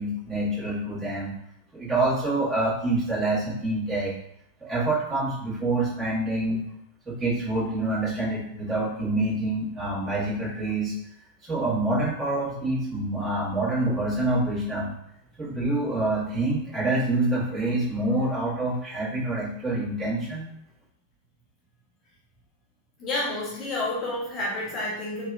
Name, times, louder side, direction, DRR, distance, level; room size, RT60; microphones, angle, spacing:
voice 1, 0.0-1.3 1.7-4.1 4.6-6.6 7.0-10.9 11.4-14.9 15.4-20.5, right 2 dB, 15° right, -9 dB, 1.3 m, -26 dB
voice 2, 23.0-25.3, left 2 dB, 30° left, -5 dB, 0.6 m, -29 dB
2.7 x 2.3 x 2.3 m, 0.77 s
figure-of-eight pair, 90°, 0 cm